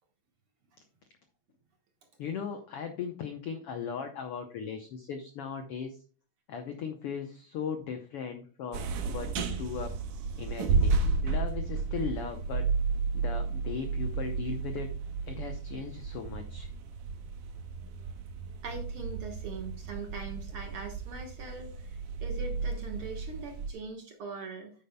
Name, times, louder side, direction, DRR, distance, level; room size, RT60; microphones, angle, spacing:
voice 1, 2.2-6.0 6.5-9.9 10.4-12.7 13.1-14.9 15.3-16.7, left 6 dB, 80° left, 6 dB, 1.3 m, -38 dB
sound 1, 8.7-23.7, right 4 dB, 80° right, 2.6 m, -33 dB
voice 2, 18.6-24.7, right 3 dB, 55° right, 3 dB, 1.8 m, -42 dB
9.7 x 8.9 x 2.2 m, 0.40 s
omnidirectional pair, 3.7 m